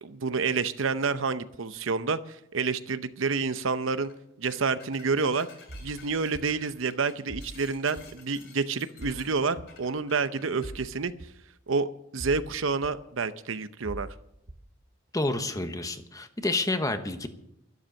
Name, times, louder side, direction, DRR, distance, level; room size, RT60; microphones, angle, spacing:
voice 1, 0.0-4.1 4.4-5.5 5.8-11.1 11.7-11.9 12.1-14.1, right 4 dB, 70° right, 12 dB, 0.7 m, -28 dB
sound 1, 3.9-4.2 4.4-10.8, left 5 dB, 60° left, 2.9 m, -53 dB
sound 2, 5.7-5.9 6.3-6.5 7.3-7.5 8.0-8.1 9.0-9.2 9.6-9.7 10.6-10.8 11.2-11.3 12.2-12.5 12.8-12.9 13.8-14.1 14.5-14.6, right 1 dB, 45° right, 1.0 m, -40 dB
voice 2, 15.1-17.3, left 2 dB, 15° left, 8 dB, 1.0 m, -29 dB
12.0 x 12.0 x 6.5 m, 0.77 s
head